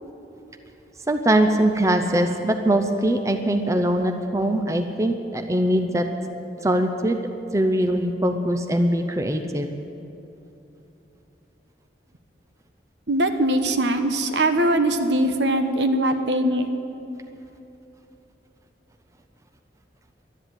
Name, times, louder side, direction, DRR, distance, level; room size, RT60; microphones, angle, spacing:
voice 1, 1.1-6.1 6.6-7.2 7.5-9.7, right 1 dB, 15° right, 6 dB, 0.6 m, -22 dB
voice 2, 13.1-16.7, right 1 dB, 75° right, 7 dB, 1.1 m, -21 dB
12.0 x 10.5 x 9.1 m, 3.0 s
head